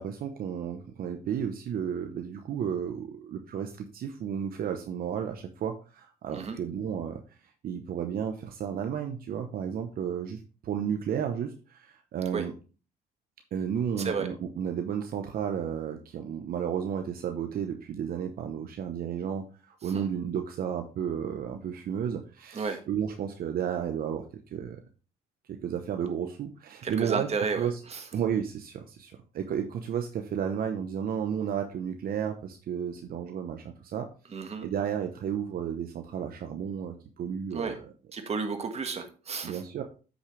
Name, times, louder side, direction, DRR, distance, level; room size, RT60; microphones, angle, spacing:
voice 1, 0.0-7.2 7.6-12.5 13.5-24.3 24.5-24.8 25.5-27.3 27.6-27.8 28.1-34.1 34.6-37.9 39.4-39.8, right 8 dB, 70° right, 5 dB, 0.9 m, -32 dB
voice 2, 14.0-14.3 19.9-20.1 22.5-22.8 26.8-28.0 34.3-34.7 37.5-37.8 38.1-39.6, right 5 dB, 40° right, 6 dB, 1.6 m, -32 dB
8.4 x 6.4 x 3.2 m, 0.36 s
cardioid pair, 95°, 16 cm